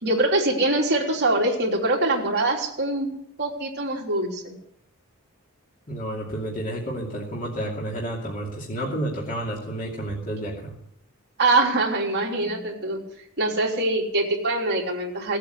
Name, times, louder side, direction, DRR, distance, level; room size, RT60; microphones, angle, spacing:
voice 1, 0.0-3.1 3.4-4.5 11.4-13.0 13.4-15.4, right 2 dB, 50° right, -1 dB, 3.3 m, -23 dB
voice 2, 5.9-10.7, right 1 dB, 40° left, -3 dB, 2.7 m, -30 dB
17.0 x 8.4 x 8.0 m, 0.74 s
head